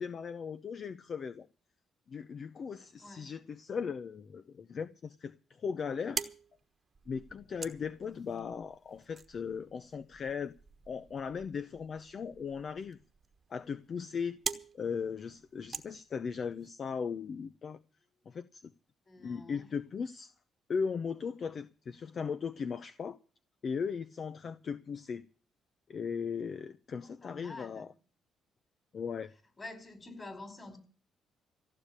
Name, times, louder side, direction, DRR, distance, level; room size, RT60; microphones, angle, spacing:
voice 1, 0.0-1.5 2.1-6.3 7.1-10.5 10.9-13.0 13.5-14.4 14.7-17.8 18.3-18.6 19.2-20.3 20.7-23.2 23.6-25.2 25.9-27.9 28.9-29.3, left 6 dB, 50° left, 0.6 m, -38 dB
voice 2, 3.0-3.5 19.1-19.7 27.0-27.9 29.6-30.8, left 2 dB, 30° left, 4.6 m, -48 dB
sound 1, 5.8-16.7, right 5 dB, 40° right, 1.2 m, -45 dB
15.5 x 6.7 x 9.9 m
cardioid pair, 90°, 0 cm